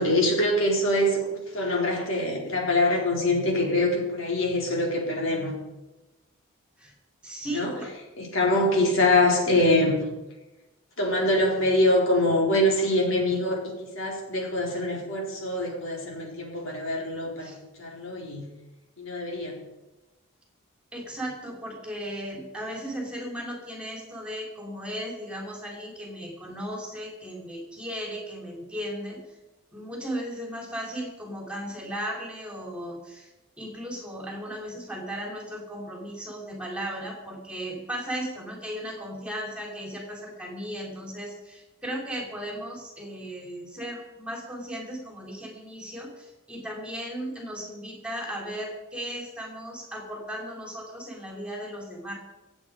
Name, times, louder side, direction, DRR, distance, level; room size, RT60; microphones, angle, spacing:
voice 1, 0.0-5.5 7.5-7.7 8.2-10.0 11.0-17.5 17.8-18.4 19.0-19.6, left 1 dB, 65° left, -1 dB, 4.2 m, -24 dB
voice 2, 7.2-7.9 17.4-17.6 20.9-29.4 29.7-33.3 33.6-52.1, equal, 5° right, -1 dB, 3.4 m, -36 dB
25.5 x 8.7 x 4.9 m, 1.0 s
head